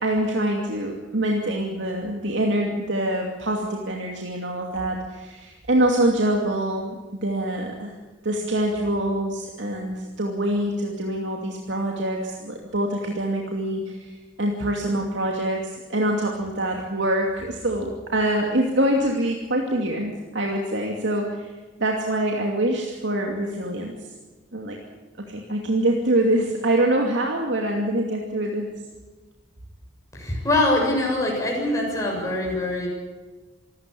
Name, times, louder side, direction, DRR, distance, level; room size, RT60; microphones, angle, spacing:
voice 1, 0.0-7.9 8.2-14.1 14.4-21.5 21.8-23.9 24.5-24.8 25.3-28.7, right 1 dB, 70° right, 0 dB, 2.6 m, -25 dB
voice 2, 30.1-32.9, left 2 dB, 15° left, -2 dB, 7.0 m, -23 dB
26.5 x 13.5 x 8.6 m, 1.3 s
head